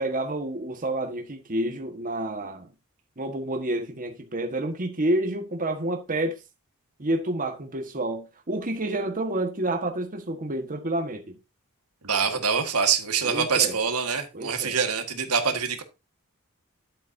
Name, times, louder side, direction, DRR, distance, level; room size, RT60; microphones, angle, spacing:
voice 1, 0.0-2.7 3.2-6.4 7.0-11.2 13.2-13.8 14.3-14.8, right 1 dB, 40° right, 1.5 m, -29 dB
voice 2, 12.0-15.8, right 6 dB, 90° right, 1.6 m, -25 dB
10.5 x 8.2 x 2.7 m
head